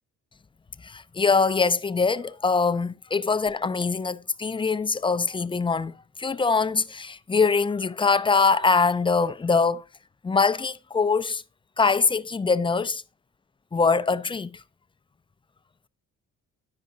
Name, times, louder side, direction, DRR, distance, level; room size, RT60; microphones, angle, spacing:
voice 1, 0.8-9.8 10.2-11.4 11.8-13.0 13.7-14.5, left 4 dB, 15° left, 0.5 m, -23 dB
10.5 x 5.1 x 3.9 m
cardioid pair, 90°, 30 cm